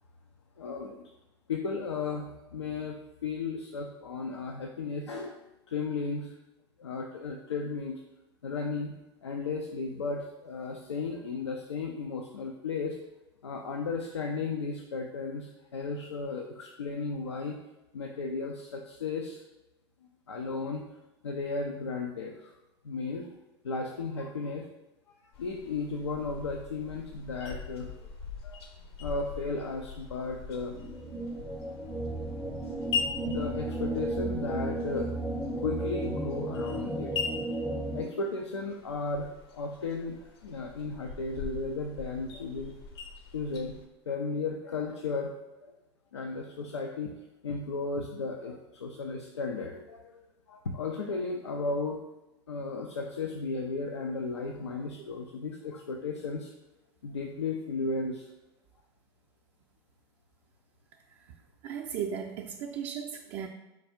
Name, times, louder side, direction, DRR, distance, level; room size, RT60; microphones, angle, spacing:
voice 1, 0.6-1.0 1.5-5.4 5.7-6.3 6.8-8.0 8.4-13.0 13.4-17.6 17.9-19.4 20.3-20.9 21.2-22.6 22.8-23.3 23.6-24.7 25.4-28.1 28.4-30.8 33.2-35.1 35.6-37.2 37.9-42.8 43.3-43.8 44.1-45.4 45.6-45.7 46.1-47.1 47.4-52.0 52.5-56.5 57.0-58.3, left 4 dB, 85° left, 2 dB, 0.4 m, -35 dB
sound 1, 25.3-43.8, left 5 dB, 70° left, 0.9 m, -41 dB
sound 2, 30.7-38.0, right 1 dB, ahead, 0.5 m, -34 dB
voice 2, 61.6-63.5, right 8 dB, 50° right, 0 dB, 0.4 m, -36 dB
4.6 x 2.3 x 4.2 m, 1.0 s
hypercardioid pair, 85°, 14 cm